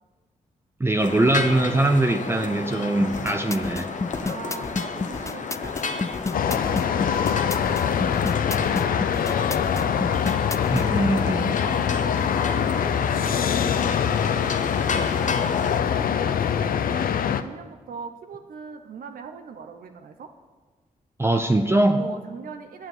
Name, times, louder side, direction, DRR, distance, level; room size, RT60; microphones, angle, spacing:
voice 1, 0.8-3.9 10.7-11.5 21.2-22.0, right 2 dB, 15° right, 5 dB, 0.7 m, -22 dB
sound 1, 1.0-15.8, left 4 dB, 60° left, 1.0 m, -32 dB
sound 2, 3.0-10.9, left 4 dB, 20° left, 0.4 m, -30 dB
voice 2, 4.2-10.1 11.1-17.1 17.4-20.3 21.9-22.9, right 6 dB, 85° right, 6 dB, 0.7 m, -41 dB
sound 3, 6.3-17.4, left 8 dB, 85° left, 0.5 m, -24 dB
8.7 x 7.4 x 7.8 m, 1.3 s
cardioid pair, 80°, 14 cm